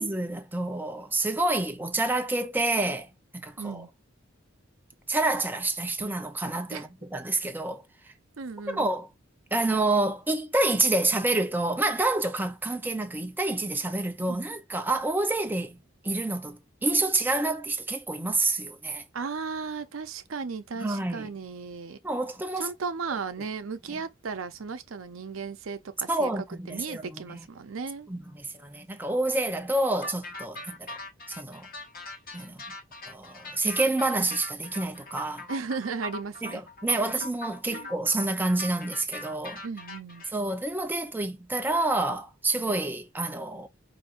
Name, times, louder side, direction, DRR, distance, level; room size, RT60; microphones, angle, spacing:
voice 1, 0.0-3.1 3.3-3.8 5.1-7.8 8.7-9.1 9.5-15.8 16.0-19.0 20.8-21.3 22.0-22.7 26.1-27.4 28.1-30.9 31.4-31.7 32.3-32.6 33.1-35.5 36.4-39.6 40.3-43.7, right 2 dB, 10° right, 0.6 m, -28 dB
voice 2, 3.6-3.9 6.7-6.9 8.4-8.9 14.3-14.4 19.1-22.0 22.6-28.1 35.5-36.6 37.0-37.1 37.7-37.9 39.6-40.2, right 5 dB, 85° right, 0.6 m, -35 dB
sound 1, 30.0-40.3, left 1 dB, 45° left, 1.1 m, -41 dB
5.0 x 2.7 x 2.5 m
head